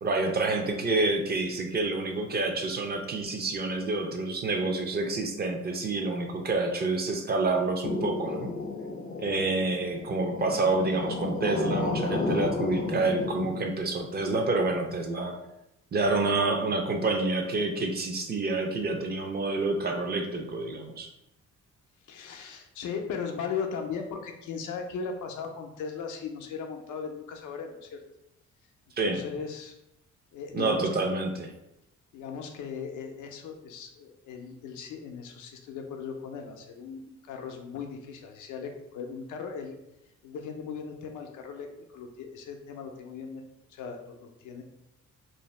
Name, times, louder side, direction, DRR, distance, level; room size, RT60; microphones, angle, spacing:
voice 1, 0.0-8.6 9.2-15.4 15.9-21.1 29.0-29.2 30.5-31.5, right 3 dB, 35° right, 3 dB, 0.5 m, -28 dB
sound 1, 7.8-13.6, left 3 dB, 30° left, 0.4 m, -32 dB
voice 2, 22.1-28.0 29.0-29.7 30.3-30.9 32.1-39.8 40.2-41.7 41.9-43.4 43.7-44.6, left 6 dB, 80° left, 3 dB, 0.5 m, -38 dB
2.6 x 2.0 x 3.1 m, 0.85 s
cardioid pair, 90°, 30 cm